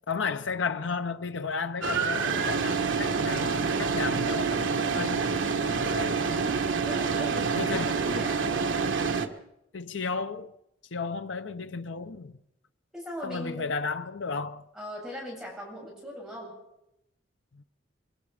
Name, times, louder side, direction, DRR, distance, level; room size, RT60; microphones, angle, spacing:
voice 1, 0.1-5.2 5.9-6.3 7.6-7.9 9.7-10.5 10.9-12.3 13.2-14.6 17.5-17.6, left 5 dB, 70° left, 0.8 m, -33 dB
sound 1, 1.8-9.3, right 5 dB, 80° right, 1.6 m, -27 dB
voice 2, 6.2-8.7 12.9-13.7 14.7-16.6, equal, 5° right, 7.8 m, -40 dB
24.0 x 24.0 x 5.0 m
head